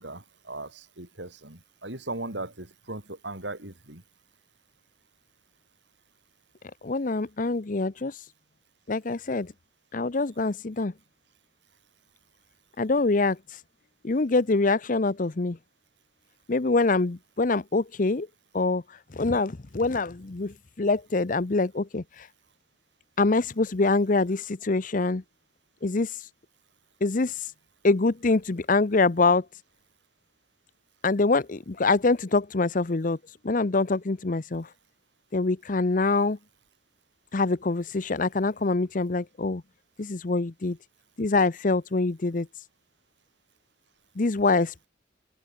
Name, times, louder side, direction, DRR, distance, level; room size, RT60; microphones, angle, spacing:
voice 1, 0.0-4.0, right 2 dB, 80° right, 7.6 m, -38 dB
voice 2, 6.8-8.1 8.9-9.5 9.9-10.9 12.8-13.4 14.0-15.6 16.5-18.3 18.5-18.8 19.1-22.3 23.2-25.2 25.8-26.1 27.0-27.3 27.8-29.4 31.0-33.2 33.4-34.7 35.3-36.4 37.3-39.6 40.0-40.8 41.2-42.5 44.2-44.8, left 3 dB, 45° left, 0.7 m, -25 dB
open air
head